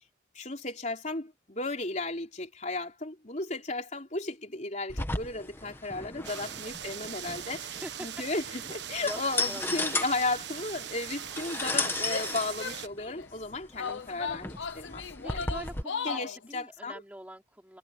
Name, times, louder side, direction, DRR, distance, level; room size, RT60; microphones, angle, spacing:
voice 1, 0.3-15.5 16.0-17.0, left 2 dB, 40° left, 3.9 m, -35 dB
sound 1, 4.9-15.8, left 2 dB, 10° left, 1.7 m, -35 dB
voice 2, 6.2-6.5 7.5-8.2 8.5-8.7 8.9-9.2 9.5-10.0 15.2-16.2 16.5-17.8, right 1 dB, 10° right, 4.7 m, -44 dB
sound 2, 6.2-12.9, right 9 dB, 65° right, 1.3 m, -40 dB
Female speech woman speaking / Yell, 12.0-13.3 13.8-16.4, left 5 dB, 80° left, 0.8 m, -37 dB
head